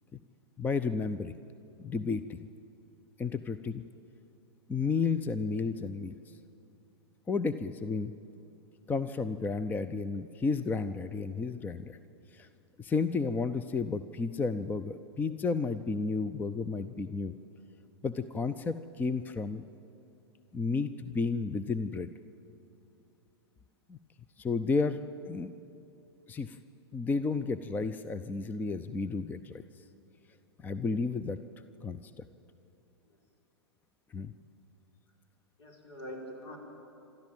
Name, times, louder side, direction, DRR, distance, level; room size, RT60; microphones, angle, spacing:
voice 1, 0.6-1.3 1.8-2.4 3.2-3.8 4.7-6.1 7.3-8.1 8.9-12.0 12.3-12.5 12.8-17.3 18.0-19.6 20.5-22.1 23.9-24.0 24.4-25.0 25.3-25.5 26.3-26.6 26.9-29.6 30.6-31.4 31.8-32.2 34.1-34.3, left 4 dB, 10° left, 12 dB, 0.5 m, -32 dB
voice 2, 35.6-36.6, equal, 65° left, 0 dB, 5.5 m, -44 dB
27.0 x 13.0 x 8.9 m, 2.6 s
hypercardioid pair, 110°, 14 cm